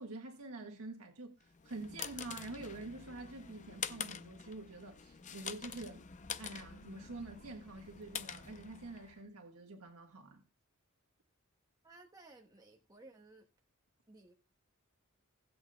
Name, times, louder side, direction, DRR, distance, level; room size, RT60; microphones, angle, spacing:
voice 1, 0.0-6.0 6.4-10.4, right 2 dB, 80° right, 1.6 m, -47 dB
sound 1, 1.5-9.2, left 7 dB, 35° left, 0.6 m, -46 dB
voice 2, 11.8-13.5 14.1-14.3, right 2 dB, 20° right, 1.4 m, -58 dB
19.5 x 8.1 x 2.3 m
head